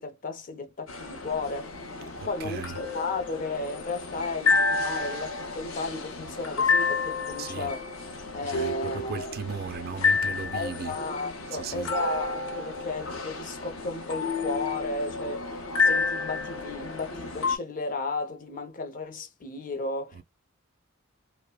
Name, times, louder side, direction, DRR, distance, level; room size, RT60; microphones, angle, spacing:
voice 1, 0.0-1.7 2.2-7.8 8.3-9.3 10.5-20.2, left 3 dB, 40° left, 0.6 m, -34 dB
sound 1, 0.9-17.6, left 4 dB, 80° left, 0.6 m, -30 dB
voice 2, 2.2-2.9 7.4-7.8 8.4-11.0 11.5-12.0 20.1-20.2, right 5 dB, 50° right, 0.5 m, -37 dB
2.9 x 2.1 x 2.2 m
head